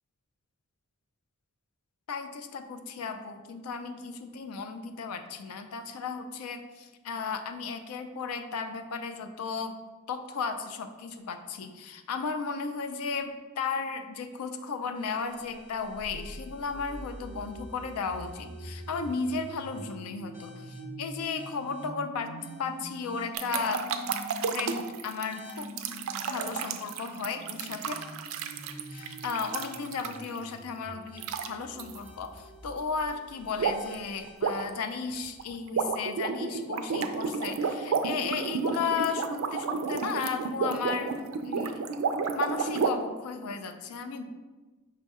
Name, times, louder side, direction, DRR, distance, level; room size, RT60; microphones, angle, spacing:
voice 1, 2.1-9.8 10.1-23.9 24.5-25.7 26.3-28.0 28.9-41.1 41.4-41.8 42.3-44.2, left 5 dB, 85° left, 7 dB, 0.4 m, -35 dB
sound 1, 14.9-34.7, equal, 40° left, 1.4 m, -45 dB
sound 2, 23.3-30.4 31.2-31.5 31.8-32.0 33.6-34.0 34.3-42.9, right 5 dB, 70° right, 0.3 m, -31 dB
5.2 x 2.4 x 4.0 m, 1.3 s
head